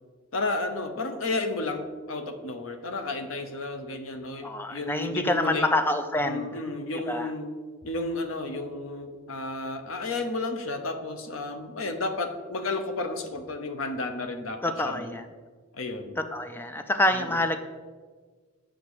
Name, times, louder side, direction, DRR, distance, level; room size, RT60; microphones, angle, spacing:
voice 1, 0.3-5.7 6.2-7.5 7.8-15.1 15.7-16.2 17.1-17.4, left 2 dB, 85° left, 7 dB, 0.8 m, -32 dB
voice 2, 4.4-6.5 7.1-7.3 14.6-15.3 16.2-17.6, left 1 dB, 10° left, 8 dB, 0.4 m, -27 dB
7.1 x 5.0 x 4.8 m, 1.5 s
head